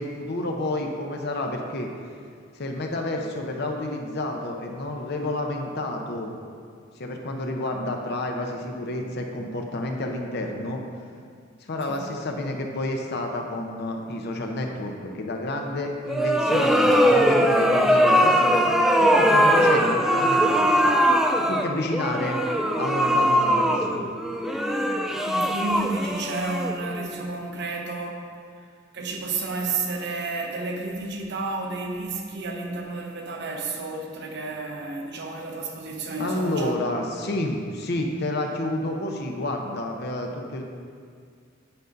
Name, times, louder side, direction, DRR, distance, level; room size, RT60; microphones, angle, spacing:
voice 1, 0.0-1.9 2.5-6.3 7.0-10.8 11.7-18.7 19.0-20.9 21.5-24.1 36.2-40.6, left 1 dB, 55° left, 2 dB, 0.7 m, -30 dB
sound 1, 16.1-27.1, equal, ahead, 0.3 m, -21 dB
voice 2, 25.2-28.3 28.9-36.8, right 3 dB, 60° right, 2 dB, 0.9 m, -31 dB
9.0 x 4.0 x 5.2 m, 2.1 s
head